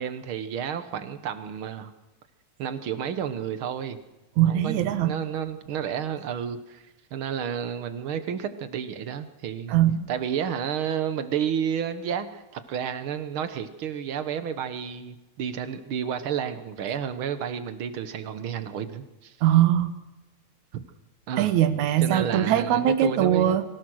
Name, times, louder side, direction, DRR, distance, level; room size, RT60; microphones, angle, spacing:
voice 1, 0.0-1.9 2.6-4.0 4.5-6.8 7.1-9.8 10.1-19.4 20.7-20.8 21.3-21.5 22.0-23.6, right 8 dB, 60° right, 11 dB, 1.5 m, -31 dB
voice 2, 4.4-5.1 9.7-10.1 19.4-19.9 21.4-23.6, right 11 dB, 80° right, 10 dB, 2.6 m, -21 dB
24.5 x 17.0 x 6.3 m, 1.0 s
omnidirectional pair, 3.4 m